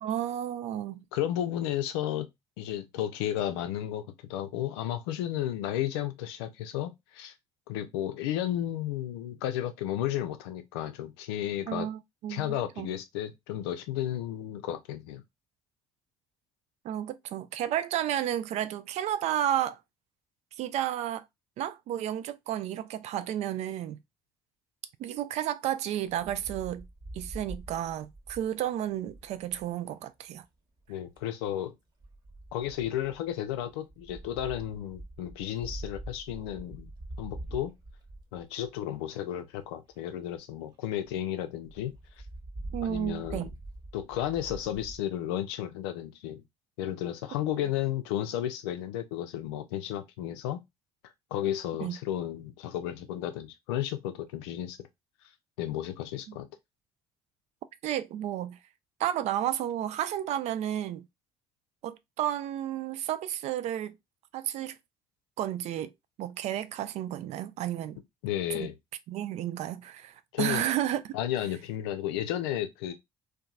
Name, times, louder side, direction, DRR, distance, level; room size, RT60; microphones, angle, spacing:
voice 1, 0.0-1.0 11.7-12.9 16.8-19.8 20.6-21.3 21.6-24.0 25.0-26.9 27.1-30.4 42.7-43.5 51.8-52.0 56.3-56.4 57.8-58.6 59.0-61.1 61.8-64.0 64.3-64.8 65.4-65.9 66.2-68.0 68.5-68.7 69.1-71.1, right 11 dB, 55° right, 0.4 m, -32 dB
voice 2, 1.1-2.3 2.6-4.0 4.3-7.3 7.7-11.9 12.3-15.2 30.9-31.7 32.5-36.9 37.2-37.7 38.3-41.9 42.8-43.5 43.9-46.4 46.8-50.6 51.0-54.8 55.6-56.5 68.2-68.7 70.3-70.6 71.1-72.9, left 11 dB, 75° left, 0.4 m, -33 dB
Wind, 26.1-29.7 30.8-31.3 32.0-39.0 39.6-39.7 39.9-40.0 40.3-40.4 40.7-40.8 41.0-41.2 41.6-45.0, right 2 dB, 35° right, 1.1 m, -44 dB
2.8 x 2.2 x 2.3 m
hypercardioid pair, 50°, 13 cm